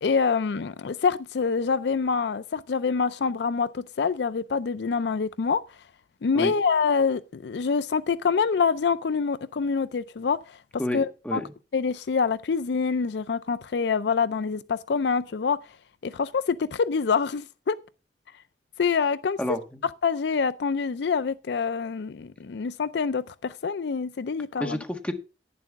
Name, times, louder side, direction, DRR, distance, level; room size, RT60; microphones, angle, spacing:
voice 1, 0.0-5.6 6.2-10.6 10.9-11.4 11.7-15.6 16.0-17.8 18.8-19.4 20.0-24.8, left 5 dB, 70° left, 0.4 m, -26 dB
voice 2, 10.8-11.4 19.4-19.8 24.6-25.1, equal, 5° left, 1.5 m, -30 dB
11.0 x 9.8 x 3.6 m
head